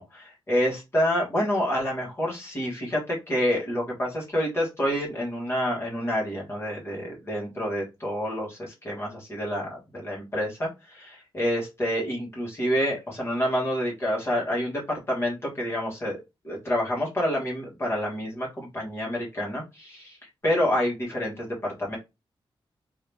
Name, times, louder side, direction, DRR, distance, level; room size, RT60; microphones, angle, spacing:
voice 1, 0.0-16.2 16.4-22.0, equal, 25° left, -3 dB, 1.4 m, -28 dB
2.8 x 2.7 x 3.3 m, 0.24 s
wide cardioid pair, 165°, 9 cm